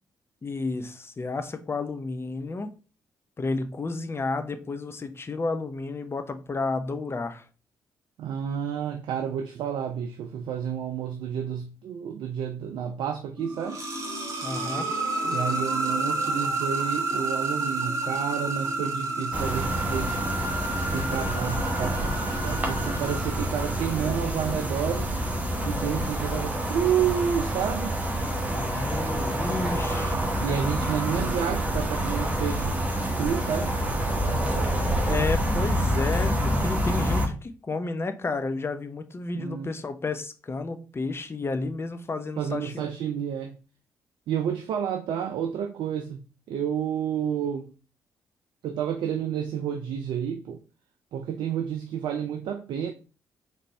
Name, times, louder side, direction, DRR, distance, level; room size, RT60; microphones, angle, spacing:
voice 1, 0.4-2.7 3.4-7.4 14.4-14.9 28.5-30.2 35.1-42.9, left 3 dB, 25° left, 0.6 m, -31 dB
voice 2, 8.2-13.8 15.2-20.2 20.9-25.2 25.6-28.0 30.4-32.8 33.2-33.7 39.3-39.7 42.4-43.6 44.3-46.2 46.5-47.7 48.6-50.6 51.1-52.9, right 8 dB, 60° right, 0.4 m, -30 dB
sound 1, 13.4-24.1, right 2 dB, 35° right, 1.5 m, -30 dB
sound 2, 19.3-37.3, right 1 dB, 15° right, 1.4 m, -27 dB
4.1 x 3.3 x 3.1 m
figure-of-eight pair, 40°, 9 cm